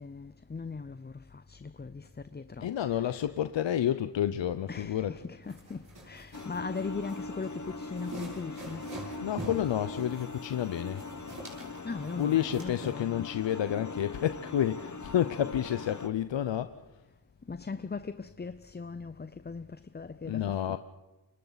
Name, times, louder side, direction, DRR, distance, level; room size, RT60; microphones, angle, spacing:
voice 1, 0.0-2.7 4.7-8.9 11.8-13.3 17.5-20.8, left 4 dB, 20° left, 0.7 m, -39 dB
voice 2, 2.6-5.2 9.2-11.0 12.1-16.7 20.2-20.8, left 10 dB, 70° left, 0.8 m, -30 dB
sound 1, 5.4-12.9, right 1 dB, 40° right, 7.9 m, -46 dB
sound 2, 6.3-16.1, left 3 dB, 40° left, 1.5 m, -41 dB
28.5 x 24.0 x 4.1 m
cardioid pair, 50°, 47 cm